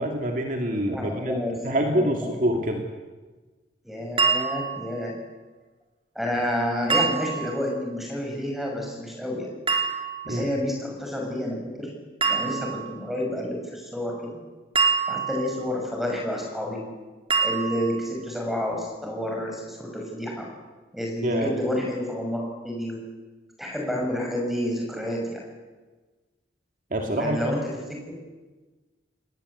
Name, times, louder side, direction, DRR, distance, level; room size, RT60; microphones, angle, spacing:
voice 1, 0.0-2.8 10.2-10.5 21.2-21.5 26.9-27.6, right 1 dB, 45° right, 2 dB, 2.3 m, -26 dB
voice 2, 0.7-2.3 3.8-5.1 6.1-9.5 10.3-12.0 12.2-14.4 15.1-16.8 17.4-20.5 20.9-23.0 23.6-25.4 27.2-27.6 27.9-28.2, left 1 dB, ahead, 0 dB, 6.3 m, -29 dB
sound 1, 4.2-4.9 6.9-7.6 9.7-10.4 12.2-12.9 14.8-15.6 17.3-18.0, right 5 dB, 30° right, 4.0 m, -25 dB
28.0 x 19.5 x 8.2 m, 1.3 s
head